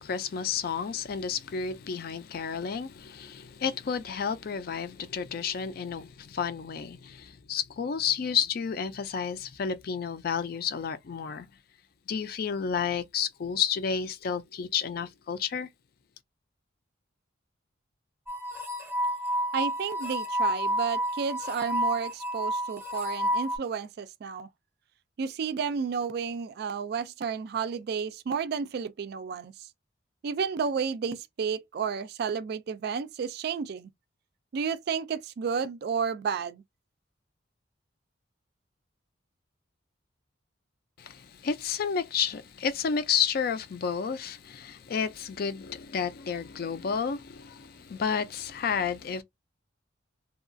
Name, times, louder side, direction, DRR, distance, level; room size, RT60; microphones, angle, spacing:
voice 1, 0.0-11.5 12.1-15.7 41.0-49.2, left 7 dB, 50° left, 0.4 m, -31 dB
sound 1, 18.3-23.6, equal, 10° right, 0.7 m, -30 dB
voice 2, 19.5-24.5 25.2-29.5 30.2-33.9 34.5-36.6, right 6 dB, 55° right, 0.3 m, -31 dB
2.7 x 2.3 x 2.5 m
head